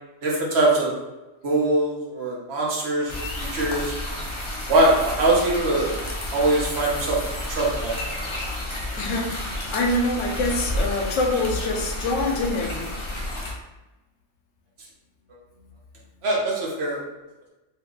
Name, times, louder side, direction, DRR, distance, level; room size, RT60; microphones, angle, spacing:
voice 1, 0.2-0.9 1.4-3.9 4.7-5.9 6.3-7.2 7.5-8.2 16.2-17.0, right 2 dB, 60° right, -3 dB, 1.0 m, -22 dB
sound 1, 3.1-13.5, left 1 dB, 40° left, 0.4 m, -31 dB
voice 2, 9.0-12.9, left 2 dB, 80° left, 1 dB, 0.9 m, -25 dB
2.7 x 2.4 x 3.6 m, 1.1 s
omnidirectional pair, 1.3 m